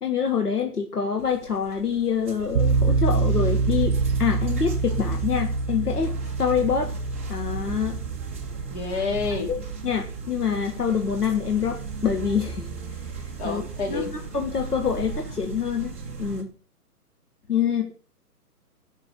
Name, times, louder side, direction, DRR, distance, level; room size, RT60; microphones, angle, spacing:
voice 1, 0.0-6.9 7.3-8.0 9.5-12.7 13.4-13.6 13.9-15.9 16.2-16.5 17.5-17.8, left 7 dB, 75° left, 3 dB, 2.0 m, -26 dB
sound 1, 1.2-16.4, right 4 dB, 10° right, 0.5 m, -35 dB
sound 2, 2.5-11.4, right 4 dB, 40° right, 0.8 m, -27 dB
voice 2, 8.7-9.5 13.4-14.1 17.8-17.9, left 4 dB, 45° left, 2 dB, 3.9 m, -29 dB
10.5 x 6.0 x 7.0 m, 0.41 s
figure-of-eight pair, 135°, 47 cm